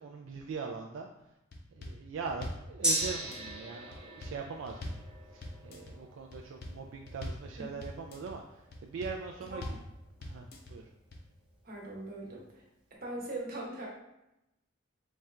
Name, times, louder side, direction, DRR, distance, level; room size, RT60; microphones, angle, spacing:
voice 1, 0.0-1.4 1.7-5.0 5.3-9.8 10.2-10.9, right 5 dB, 75° right, 2 dB, 0.3 m, -42 dB
sound 1, 1.5-2.0 2.3-2.7 3.0-3.5 3.9-4.4 4.7-5.1 5.4-5.9 6.3-6.8 7.1-7.5 7.8-8.3 8.7-9.2 9.5-9.9 10.2-10.7 11.1-11.2, left 1 dB, 50° left, 0.5 m, -42 dB
Gong, 2.8-10.6 10.9-11.0, right 1 dB, 5° right, 0.5 m, -39 dB
voice 2, 11.6-12.6 13.0-13.9, right 1 dB, 45° right, -3 dB, 1.0 m, -40 dB
4.1 x 2.4 x 3.3 m, 0.89 s
head